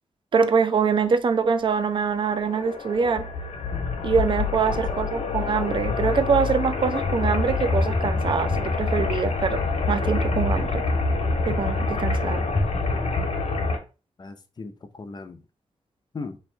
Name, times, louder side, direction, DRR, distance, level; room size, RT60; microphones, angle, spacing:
voice 1, 0.3-3.2 4.0-9.6 9.9-10.8 11.5-12.5, right 5 dB, 45° right, 0.4 m, -24 dB
sound 1, 2.2-13.8, left 3 dB, 60° left, 1.0 m, -26 dB
voice 2, 4.7-5.4 14.2-15.4 16.1-16.4, left 4 dB, 35° left, 0.6 m, -39 dB
3.1 x 2.6 x 4.4 m
wide cardioid pair, 105°, 12 cm